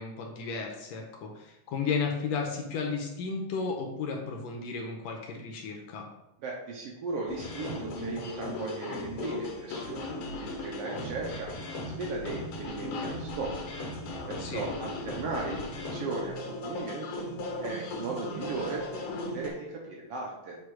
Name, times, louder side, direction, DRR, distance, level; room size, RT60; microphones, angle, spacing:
voice 1, 0.0-6.1 14.4-14.7, left 5 dB, 75° left, 1 dB, 1.8 m, -34 dB
voice 2, 6.4-11.5 11.8-13.6 14.3-17.2 17.6-20.6, right 3 dB, 70° right, -2 dB, 1.6 m, -37 dB
sound 1, 7.3-19.5, left 2 dB, 90° left, 2.6 m, -37 dB
7.6 x 2.9 x 4.7 m, 0.91 s
omnidirectional pair, 3.4 m